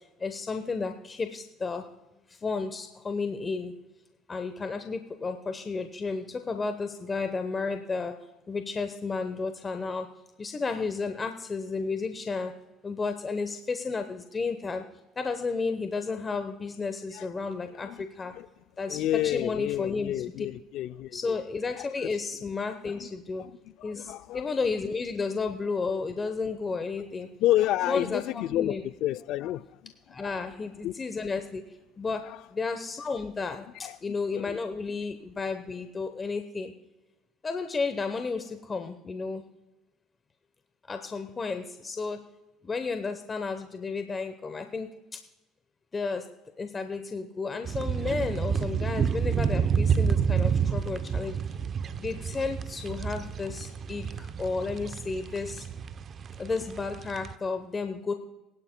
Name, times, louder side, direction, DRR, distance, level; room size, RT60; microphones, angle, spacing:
voice 1, 0.2-1.9 2.3-3.7 4.3-8.1 8.5-10.1 10.4-12.5 12.8-14.8 15.2-18.3 18.8-20.5 21.1-23.4 23.8-27.3 27.9-28.2 28.5-28.8 30.1-31.6 32.0-32.2 32.5-36.7 37.4-39.4 40.9-42.2 42.6-45.2 45.9-46.3 46.6-51.6 52.0-55.7 56.4-58.1, left 4 dB, 30° left, 0.9 m, -32 dB
voice 2, 18.9-21.4 21.7-22.1 23.0-23.1 23.4-23.5 23.8-24.5 27.4-29.9 30.2-30.3 30.8-30.9 32.3-32.4 33.8-34.0 34.3-34.6, left 14 dB, 70° left, 0.4 m, -30 dB
sound 1, 47.6-57.3, right 7 dB, 45° right, 0.7 m, -29 dB
21.5 x 11.5 x 2.2 m
supercardioid pair, 90°, 0 cm